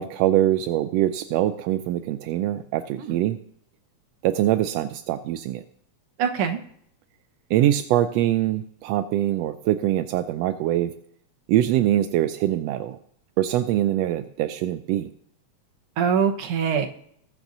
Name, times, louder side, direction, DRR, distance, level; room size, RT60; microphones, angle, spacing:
voice 1, 0.0-3.4 4.2-5.6 7.5-10.9 11.5-13.0 13.4-15.1, right 13 dB, 80° right, 9 dB, 1.5 m, -23 dB
voice 2, 6.2-6.6 16.0-16.9, right 7 dB, 60° right, 5 dB, 1.7 m, -23 dB
20.5 x 7.2 x 2.6 m, 0.68 s
omnidirectional pair, 3.4 m